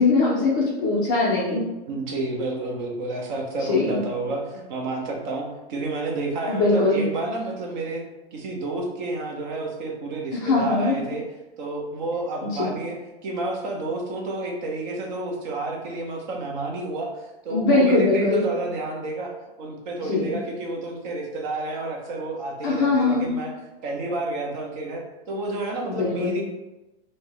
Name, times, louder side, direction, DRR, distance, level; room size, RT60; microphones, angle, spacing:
voice 1, 0.0-1.6 3.7-4.0 6.5-7.0 10.3-10.9 12.6-12.7 17.5-18.4 20.0-20.3 22.6-23.3 25.8-26.4, left 3 dB, 20° left, -5 dB, 0.4 m, -21 dB
voice 2, 1.9-8.0 8.3-11.2 11.6-13.0 13.2-19.3 19.6-23.5 23.8-26.4, right 2 dB, 45° right, 0 dB, 0.8 m, -30 dB
4.2 x 2.1 x 3.2 m, 1.0 s
supercardioid pair, 155°, 33 cm